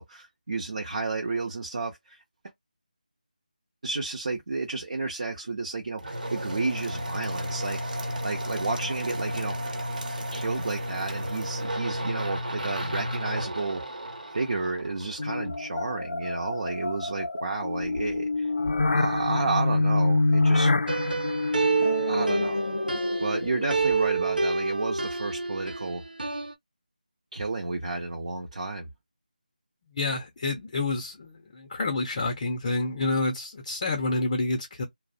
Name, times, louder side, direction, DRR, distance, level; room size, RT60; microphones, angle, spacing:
voice 1, 0.0-2.2 3.8-7.8 8.2-9.6 10.3-13.8 14.3-18.5 18.9-20.7 22.1-22.7 23.2-26.0 27.3-28.9, right 3 dB, 50° right, 0.6 m, -31 dB
sound 1, 6.0-15.6, equal, 65° right, 0.9 m, -33 dB
sound 2, 15.2-24.3, left 2 dB, 75° left, 0.4 m, -27 dB
sound 3, 20.9-23.5 23.7-25.9 26.2-26.5, right 4 dB, 90° right, 0.6 m, -28 dB
voice 2, 30.0-34.8, left 2 dB, 30° left, 0.6 m, -28 dB
2.5 x 2.0 x 2.5 m
figure-of-eight pair, 165°, 5 cm